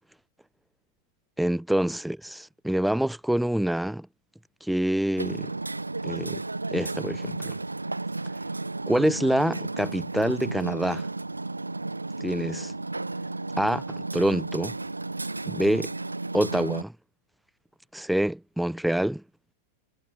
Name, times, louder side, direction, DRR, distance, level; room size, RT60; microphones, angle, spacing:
voice 1, 1.4-4.1 4.6-5.5 6.0-6.4 6.7-7.6 8.9-11.1 12.2-12.7 13.6-14.8 15.5-15.9 16.3-16.9 17.9-19.2, right 1 dB, ahead, 0.5 m, -26 dB
Hammer, 5.2-16.8, right 2 dB, 80° right, 0.8 m, -33 dB
figure-of-eight pair, 90°, 0 cm